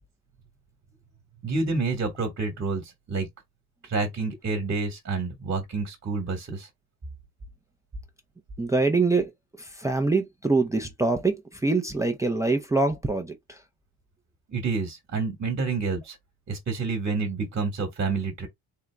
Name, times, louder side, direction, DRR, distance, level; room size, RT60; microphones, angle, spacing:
voice 1, 1.4-3.3 3.8-6.7 14.5-16.2 16.5-18.5, right 4 dB, 30° right, 1.3 m, -28 dB
voice 2, 8.6-9.3 9.6-13.6, right 3 dB, 10° right, 0.6 m, -24 dB
3.8 x 2.8 x 3.3 m
cardioid pair, 120°, 39 cm